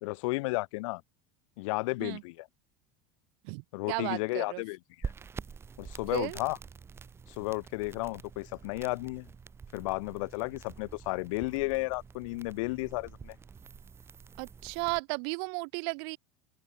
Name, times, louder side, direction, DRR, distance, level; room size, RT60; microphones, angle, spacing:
voice 1, 0.0-1.0 1.6-2.5 3.7-5.1 5.8-6.6 7.3-9.3 9.7-13.4, left 23 dB, 70° left, 1.1 m, -33 dB
voice 2, 3.4-4.6 6.1-6.4 14.4-16.2, right 40 dB or more, 50° right, 0.5 m, -34 dB
sound 1, 5.0-15.0, right 6 dB, 15° right, 2.8 m, -46 dB
open air
cardioid pair, 175°, 17 cm